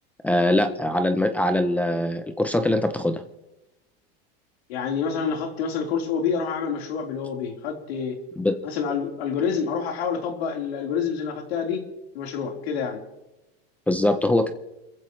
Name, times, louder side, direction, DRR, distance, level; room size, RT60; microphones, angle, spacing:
voice 1, 0.2-3.2 8.4-8.6 13.9-14.5, left 1 dB, 5° left, 9 dB, 0.5 m, -22 dB
voice 2, 4.7-8.2 8.6-11.9 12.1-13.0, left 6 dB, 90° left, 1 dB, 4.0 m, -27 dB
29.0 x 15.0 x 3.2 m, 0.99 s
supercardioid pair, 165°, 31 cm